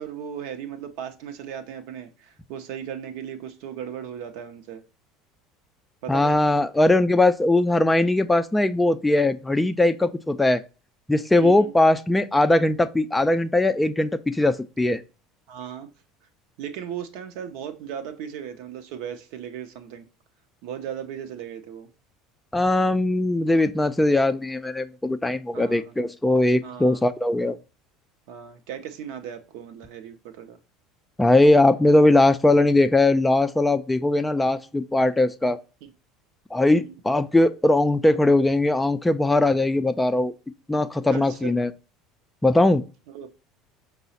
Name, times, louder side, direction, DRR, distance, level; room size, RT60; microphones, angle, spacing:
voice 1, 0.0-4.8 6.0-6.4 11.4-11.7 15.5-15.9 16.6-20.1 20.6-21.9 25.5-25.9 26.6-27.0 28.3-30.6 35.8-35.9 36.7-36.9 41.1-41.5 43.1-43.3, right 9 dB, 60° right, 0.6 m, -37 dB
voice 2, 6.1-10.6 11.1-15.0 22.5-27.6 31.2-35.6 36.5-40.3 40.7-41.7 42.4-42.8, left 2 dB, 10° left, 0.4 m, -20 dB
5.4 x 2.0 x 4.0 m
figure-of-eight pair, 70°, 0 cm